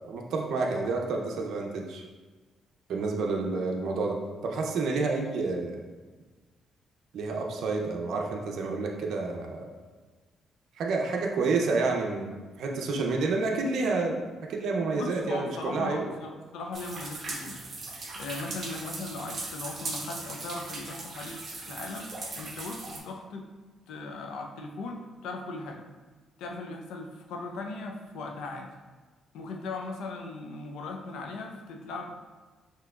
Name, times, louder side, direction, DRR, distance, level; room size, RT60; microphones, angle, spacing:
voice 1, 0.0-2.0 2.9-5.8 7.1-9.7 10.8-14.2 14.5-16.1, right 3 dB, 70° right, 1 dB, 0.6 m, -29 dB
voice 2, 15.0-17.6 18.1-22.1 22.3-23.5 23.9-25.8 26.4-28.7 29.3-32.2, left 3 dB, 85° left, 2 dB, 0.5 m, -38 dB
sound 1, 16.7-23.0, right 3 dB, 50° right, 0.9 m, -39 dB
5.9 x 2.8 x 2.3 m, 1.4 s
cardioid pair, 90°, 0 cm